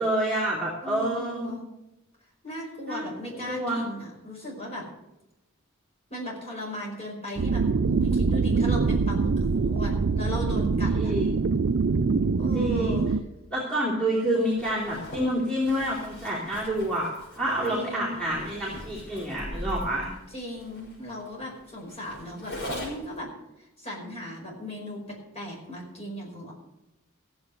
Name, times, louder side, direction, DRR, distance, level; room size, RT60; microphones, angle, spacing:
voice 1, 0.0-1.5 2.9-3.0 3.4-3.8 10.9-11.4 12.5-13.0 13.5-20.1, right 1 dB, 5° left, -7 dB, 3.0 m, -28 dB
voice 2, 0.8-1.6 2.4-4.9 6.1-11.1 12.4-13.2 17.7-18.3 20.3-23.3 23.6-26.5, equal, 30° left, -2 dB, 5.1 m, -37 dB
sound 1, 7.4-13.2, right 4 dB, 55° right, 0.5 m, -24 dB
Zipper (clothing), 14.5-23.2, equal, 50° left, 6.4 m, -41 dB
15.5 x 7.8 x 6.9 m, 0.91 s
head